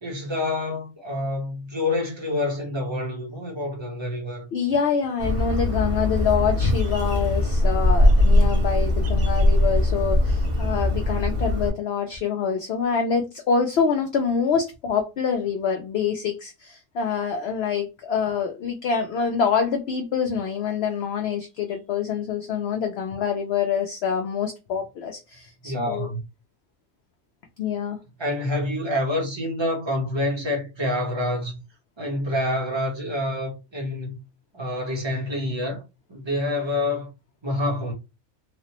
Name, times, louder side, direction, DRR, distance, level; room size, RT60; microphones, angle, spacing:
voice 1, 0.0-4.5 25.6-26.2 28.2-31.6 32.0-34.2 34.5-35.8 36.1-37.1 37.4-37.9, left 1 dB, 25° right, 0.9 m, -27 dB
voice 2, 4.5-26.1 27.6-28.0, left 6 dB, 65° left, 0.7 m, -26 dB
Bird, 5.2-11.7, left 1 dB, 50° right, 1.1 m, -21 dB
3.3 x 2.0 x 2.8 m
omnidirectional pair, 1.4 m